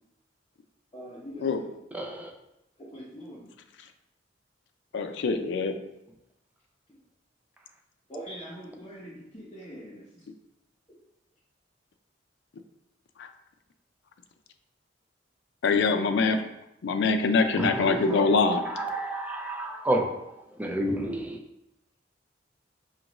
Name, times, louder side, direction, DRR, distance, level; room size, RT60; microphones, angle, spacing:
voice 1, 0.9-1.7 2.9-3.5 8.1-10.0, equal, 25° left, -8 dB, 0.8 m, -42 dB
voice 2, 1.9-2.3 17.6-20.2 20.6-21.4, right 1 dB, 10° right, 2 dB, 0.4 m, -30 dB
voice 3, 4.9-5.7 15.6-16.4 16.8-18.6, left 4 dB, 70° left, 7 dB, 0.4 m, -24 dB
5.1 x 2.4 x 3.0 m, 0.86 s
head